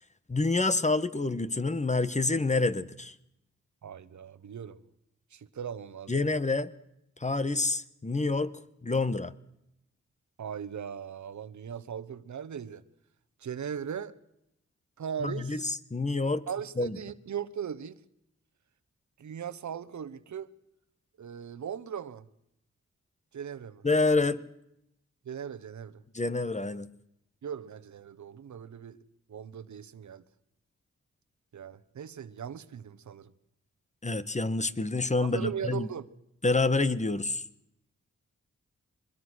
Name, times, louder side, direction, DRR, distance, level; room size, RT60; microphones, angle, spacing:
voice 1, 0.3-3.1 6.1-6.7 7.2-8.5 8.8-9.3 15.2-16.4 16.8-17.0 23.8-24.4 26.1-26.9 34.0-35.9 36.4-37.4, left 3 dB, 25° left, 1.4 m, -27 dB
voice 2, 3.8-4.8 5.3-6.4 10.4-12.8 13.4-14.1 15.0-15.7 16.5-18.0 19.2-20.5 21.2-22.2 23.3-23.8 25.2-26.0 27.4-29.0 29.3-30.2 31.5-33.3 35.2-36.1, right 8 dB, 75° right, 1.2 m, -38 dB
23.5 x 21.0 x 6.4 m
cardioid pair, 60°, 29 cm